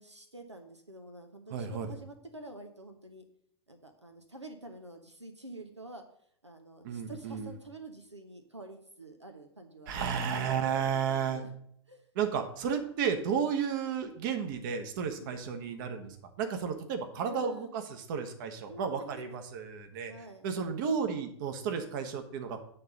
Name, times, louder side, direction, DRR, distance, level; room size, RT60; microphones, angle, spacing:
voice 1, 0.0-3.2 3.7-6.0 6.4-10.0 10.9-11.5 11.9-12.1 15.2-15.4 17.2-17.7 18.7-19.4 20.1-20.5, right 2 dB, 90° right, 5 dB, 0.8 m, -48 dB
voice 2, 1.5-1.9 6.8-7.5 9.9-11.4 12.1-20.1 20.4-22.6, right 7 dB, 50° right, 6 dB, 1.1 m, -33 dB
7.8 x 3.9 x 6.4 m, 0.67 s
figure-of-eight pair, 95°, 14 cm